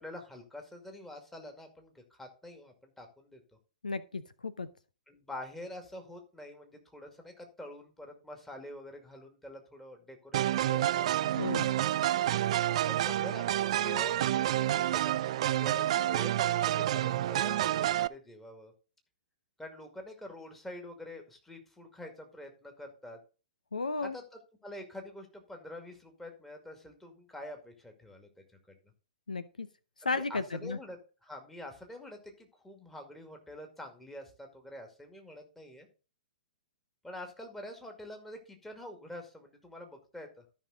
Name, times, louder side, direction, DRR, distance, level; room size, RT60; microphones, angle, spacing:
voice 1, 0.0-3.4 5.1-11.1 12.9-18.7 19.6-23.2 24.0-28.3 30.0-35.9 37.0-40.4, left 1 dB, 5° left, 3 dB, 2.2 m, -46 dB
voice 2, 3.8-4.7 11.4-11.7 23.7-24.2 29.3-29.7 30.0-30.8, left 3 dB, 80° left, 15 dB, 0.7 m, -34 dB
sound 1, 10.3-18.1, right 13 dB, 50° right, 0.4 m, -29 dB
13.0 x 5.7 x 3.9 m, 0.34 s
figure-of-eight pair, 115°, 4 cm